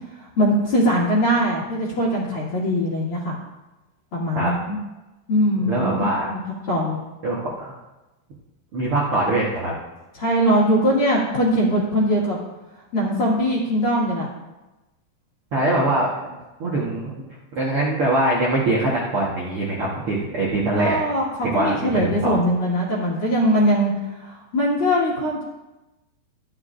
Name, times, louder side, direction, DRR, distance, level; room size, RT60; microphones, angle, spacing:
voice 1, 0.2-3.4 4.1-4.8 5.3-6.4 6.7-7.0 10.2-12.4 12.9-14.3 20.7-25.4, equal, 40° left, -8 dB, 2.1 m, -21 dB
voice 2, 5.7-6.3 7.2-7.8 8.7-9.7 15.5-16.3 16.6-17.3 17.5-21.0 21.4-22.4, right 1 dB, 75° right, -5 dB, 1.2 m, -23 dB
14.5 x 10.5 x 2.6 m, 1.1 s
omnidirectional pair, 4.7 m